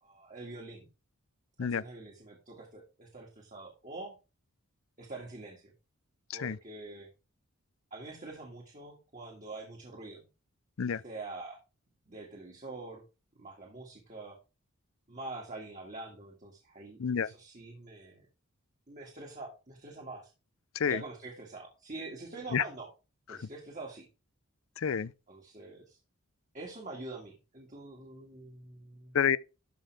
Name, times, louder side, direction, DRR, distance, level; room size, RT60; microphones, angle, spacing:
voice 1, 0.0-0.9 1.6-4.2 5.0-5.7 6.3-7.1 7.9-10.2 11.0-11.6 12.1-13.0 13.3-14.4 15.1-18.3 18.9-20.3 20.8-22.9 23.3-24.1 25.3-26.0 26.5-29.2, right 2 dB, 35° right, 2.1 m, -45 dB
voice 2, 24.8-25.1 29.1-29.4, left 7 dB, 65° left, 0.5 m, -28 dB
13.0 x 5.6 x 3.4 m
head